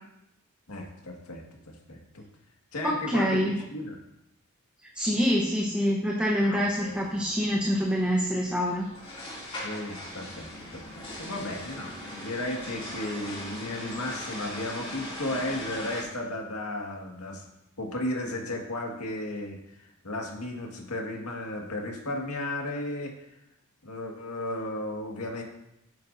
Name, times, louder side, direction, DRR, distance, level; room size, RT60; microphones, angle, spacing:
voice 1, 0.7-2.2 2.7-4.0 6.4-7.0 9.6-17.5 17.8-23.1 23.8-25.4, left 1 dB, 85° left, 0 dB, 1.9 m, -35 dB
voice 2, 2.8-3.6 4.9-8.9, equal, 5° right, -3 dB, 1.0 m, -26 dB
sound 1, 6.7-16.0, left 1 dB, 25° left, 2.9 m, -40 dB
11.0 x 9.2 x 2.7 m, 0.83 s
head